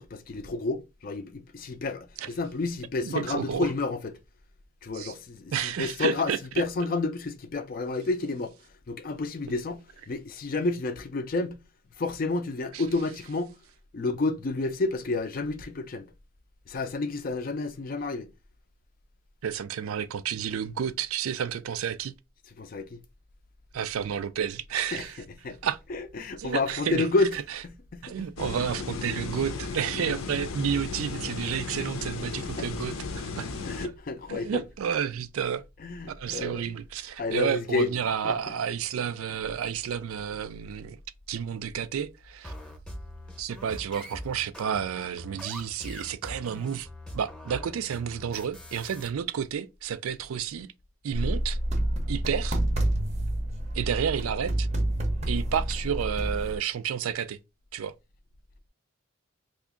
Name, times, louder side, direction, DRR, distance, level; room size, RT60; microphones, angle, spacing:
voice 1, 0.0-4.0 4.8-8.5 8.9-11.6 12.0-13.5 13.9-16.0 16.7-18.3 22.6-23.0 24.9-25.0 25.4-25.6 25.9-27.3 27.6-28.3 30.1-30.2 31.6-31.8 32.6-32.7 33.6-34.6 35.8-36.6 37.2-37.9 38.2-38.3, left 3 dB, 45° left, 0.4 m, -30 dB
voice 2, 3.0-3.7 4.9-5.1 5.5-6.4 12.7-12.8 19.4-22.1 23.7-25.2 25.6-25.8 26.4-27.1 28.0-33.5 33.8-33.9 34.3-35.7 36.1-41.0 41.3-42.5 43.4-46.9 47.1-50.7 51.0-51.6 52.1-52.6 53.7-54.7 55.3-57.4 57.7-57.9, right 8 dB, 85° right, 0.4 m, -31 dB
sound 1, 28.4-33.9, left 4 dB, 85° left, 0.6 m, -35 dB
sound 2, 42.4-49.1, left 1 dB, 5° left, 0.7 m, -43 dB
sound 3, 51.1-56.6, right 1 dB, 30° right, 0.5 m, -28 dB
2.8 x 2.4 x 3.6 m
head